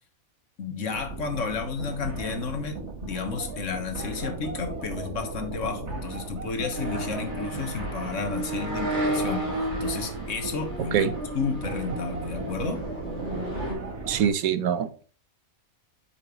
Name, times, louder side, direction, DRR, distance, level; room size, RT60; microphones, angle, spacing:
voice 1, 0.6-9.5 9.8-11.1 11.3-12.9, left 5 dB, 60° left, 5 dB, 1.7 m, -32 dB
sound 1, 0.9-14.3, right 3 dB, 55° right, 1.7 m, -37 dB
sound 2, 6.7-13.7, right 1 dB, 35° right, 3.5 m, -32 dB
voice 2, 14.1-15.0, right 8 dB, 85° right, 12 dB, 1.2 m, -24 dB
8.7 x 6.0 x 3.0 m, 0.39 s
omnidirectional pair, 1.5 m